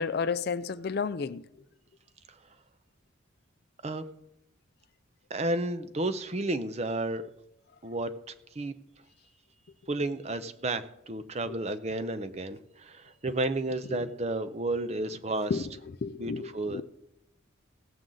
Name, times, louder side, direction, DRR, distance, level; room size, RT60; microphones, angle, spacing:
voice 1, 0.0-1.4 13.9-14.0 15.5-15.6 16.0-16.8, left 5 dB, 50° left, 0.4 m, -31 dB
voice 2, 5.3-7.2 7.8-8.1 8.5-8.7 9.9-15.7 16.2-16.8, right 2 dB, 30° right, 0.5 m, -32 dB
17.0 x 7.6 x 3.8 m
head